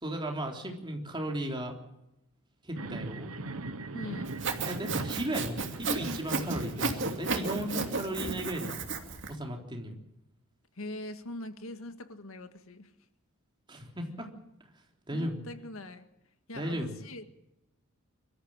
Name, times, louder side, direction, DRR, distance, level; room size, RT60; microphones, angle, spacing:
voice 1, 0.0-1.7 2.6-3.3 4.7-8.8 9.3-10.0 13.7-14.3 15.1-15.4 16.5-16.9, right 1 dB, 20° right, 2 dB, 3.6 m, -35 dB
sound 1, 2.7-7.9, right 2 dB, 90° right, 1.3 m, -40 dB
voice 2, 3.9-4.4 10.8-12.9 15.1-16.1 16.5-17.3, left 1 dB, 80° left, 9 dB, 1.8 m, -42 dB
Sawing, 4.3-9.3, right 3 dB, 60° right, 2.8 m, -33 dB
24.5 x 14.0 x 8.8 m, 0.86 s
head